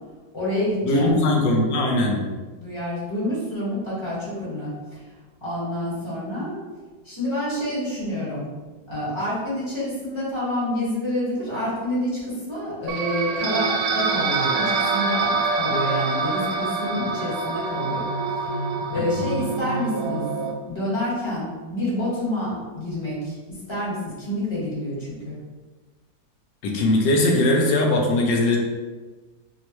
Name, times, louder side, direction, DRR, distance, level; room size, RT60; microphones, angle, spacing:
voice 1, 0.3-1.1 2.5-5.0 5.4-6.6 7.0-8.5 8.9-18.0 18.4-18.5 18.9-20.2 20.6-23.4 23.7-25.3, left 1 dB, 20° left, -9 dB, 0.9 m, -28 dB
voice 2, 0.8-2.2 26.6-28.6, left 1 dB, 75° left, 0 dB, 1.3 m, -20 dB
sound 1, 12.9-20.5, right 4 dB, 85° right, 1.3 m, -25 dB
4.4 x 2.1 x 3.0 m, 1.3 s
omnidirectional pair, 2.0 m